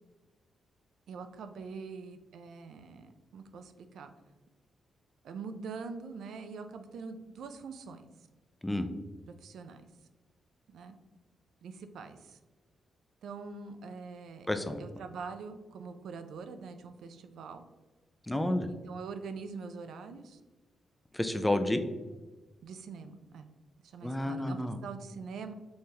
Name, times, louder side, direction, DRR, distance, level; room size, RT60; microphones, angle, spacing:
voice 1, 1.1-4.1 5.2-8.0 9.3-9.9 10.7-10.9 11.6-12.4 13.2-14.5 14.8-17.6 18.7-20.4 22.6-23.5 23.8-25.5, right 5 dB, 80° right, 8 dB, 0.4 m, -44 dB
voice 2, 14.5-14.8 18.3-18.7 21.1-21.8 24.0-24.8, left 1 dB, 10° left, 7 dB, 0.4 m, -30 dB
5.5 x 3.2 x 2.8 m, 1.2 s
wide cardioid pair, 135°, 0 cm